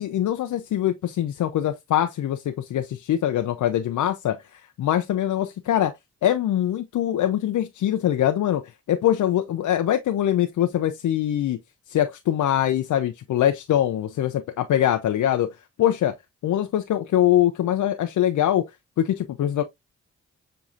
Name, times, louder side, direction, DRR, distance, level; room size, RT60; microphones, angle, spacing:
voice 1, 0.0-5.9 6.2-11.6 11.9-16.1 16.4-19.6, left 11 dB, 70° left, 0.6 m, -23 dB
7.1 x 2.9 x 2.5 m
supercardioid pair, 45°, 31 cm